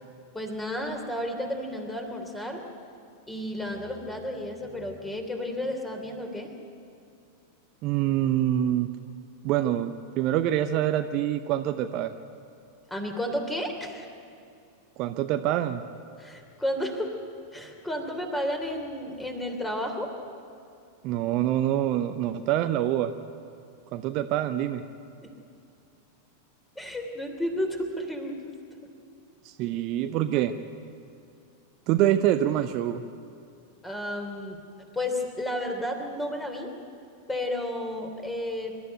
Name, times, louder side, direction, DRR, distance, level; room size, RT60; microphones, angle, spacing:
voice 1, 0.3-2.6 3.3-6.5 12.9-14.1 16.2-17.2 17.5-20.1 25.2-25.3 26.8-28.6 33.8-34.6 34.9-36.7 37.3-38.8, left 1 dB, 10° left, 4 dB, 3.1 m, -32 dB
voice 2, 7.8-8.9 9.4-12.1 15.0-15.8 21.0-23.1 23.9-24.8 29.4-30.6 31.9-33.0, right 12 dB, 40° right, 9 dB, 0.7 m, -25 dB
25.5 x 12.5 x 9.2 m, 2.6 s
figure-of-eight pair, 90°, 0 cm